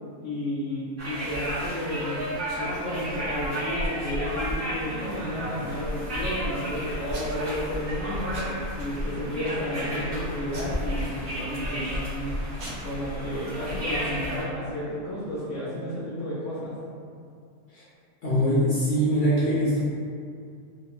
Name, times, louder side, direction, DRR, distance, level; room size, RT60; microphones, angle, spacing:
voice 1, 0.2-2.2 2.6-8.4 8.8-12.3 12.8-16.7, left 1 dB, 70° left, -10 dB, 0.9 m, -32 dB
sound 1, 1.0-14.4, equal, 45° right, 1.2 m, -32 dB
Packing tape duct tape / Tearing, 4.5-5.7 6.2-6.7 7.1-7.6 7.9-8.0 8.3-9.0 9.5-9.8 10.5-11.8 12.3-12.4 12.6-12.7, right 1 dB, 90° right, 1.1 m, -42 dB
voice 2, 18.2-19.8, equal, 50° left, -11 dB, 0.6 m, -22 dB
3.0 x 2.1 x 2.4 m, 2.3 s
omnidirectional pair, 1.4 m